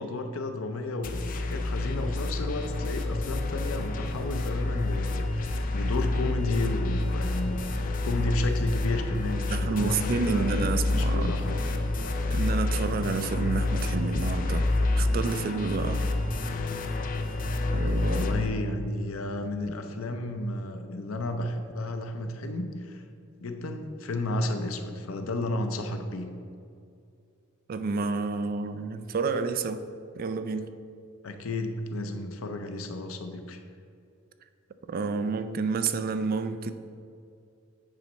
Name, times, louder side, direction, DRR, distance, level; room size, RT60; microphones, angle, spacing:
voice 1, 0.0-10.5 10.9-11.6 17.7-23.0 23.4-26.3 31.2-33.6, left 2 dB, 90° left, 6 dB, 0.6 m, -32 dB
sound 1, 1.0-18.5, left 2 dB, 40° left, 0.5 m, -28 dB
voice 2, 9.5-11.3 12.3-14.6 15.0-16.0 17.7-18.2 27.7-29.8 30.2-30.7 34.9-36.7, right 4 dB, 45° right, 10 dB, 0.3 m, -29 dB
8.8 x 3.1 x 5.4 m, 2.4 s
head